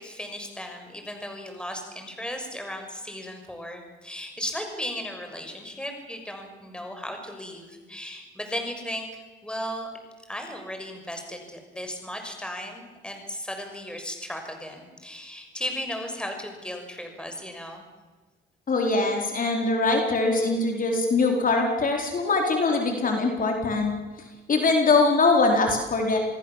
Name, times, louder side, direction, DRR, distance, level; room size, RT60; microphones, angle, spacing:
voice 1, 0.0-9.1 9.4-9.9 10.3-17.8, equal, 5° left, 4 dB, 6.4 m, -36 dB
voice 2, 18.7-23.9 24.5-26.2, left 3 dB, 45° left, 2 dB, 4.5 m, -22 dB
28.0 x 20.5 x 7.5 m, 1.3 s
cardioid pair, 90°, 20 cm